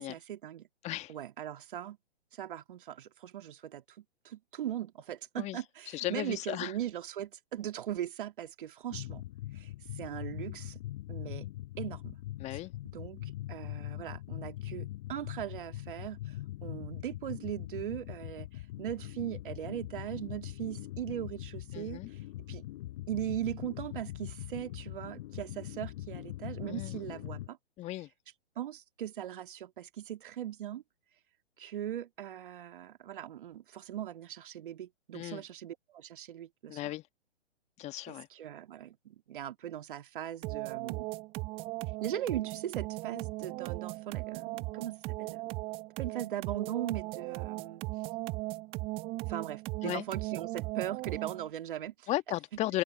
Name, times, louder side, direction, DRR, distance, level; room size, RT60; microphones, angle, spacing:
voice 1, 0.0-0.7 1.1-2.0 2.3-9.2 9.5-10.8 11.1-11.5 11.8-12.2 12.5-12.6 12.9-22.6 23.1-27.6 28.6-30.8 31.6-36.8 38.1-41.1 42.0-45.5 46.0-47.8 49.3-52.1, right 11 dB, 50° right, 2.5 m, -39 dB
voice 2, 5.9-6.7 12.4-12.7 21.7-22.1 26.7-27.0 27.8-28.1 35.1-35.4 36.7-37.0 37.8-38.3 49.8-50.0 52.1-52.8, left 15 dB, 20° left, 1.7 m, -35 dB
sound 1, 8.9-27.5, left 15 dB, 40° left, 7.1 m, -42 dB
sound 2, 40.4-51.5, right 22 dB, 15° right, 0.6 m, -38 dB
open air
figure-of-eight pair, 120°, 33 cm